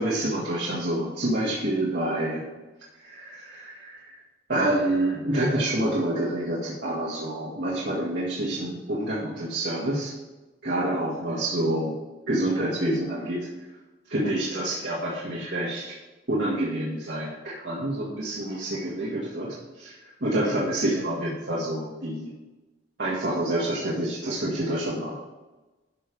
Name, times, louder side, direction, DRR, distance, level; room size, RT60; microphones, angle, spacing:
voice 1, 0.0-2.4 3.0-4.2 4.5-10.1 10.6-11.9 12.3-13.5 14.1-16.0 16.3-22.3 23.0-25.1, right 1 dB, 70° right, -6 dB, 2.0 m, -27 dB
12.0 x 5.4 x 4.8 m, 1.1 s
head